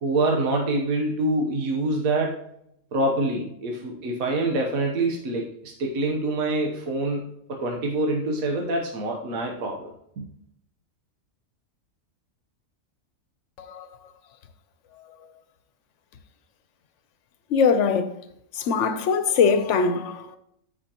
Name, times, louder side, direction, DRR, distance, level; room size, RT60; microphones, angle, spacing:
voice 1, 0.0-2.4 2.9-10.2, right 2 dB, 85° right, 1.5 m, -26 dB
voice 2, 17.5-18.1 18.6-20.4, left 5 dB, 60° left, 1.0 m, -22 dB
13.5 x 5.0 x 2.9 m
omnidirectional pair, 1.4 m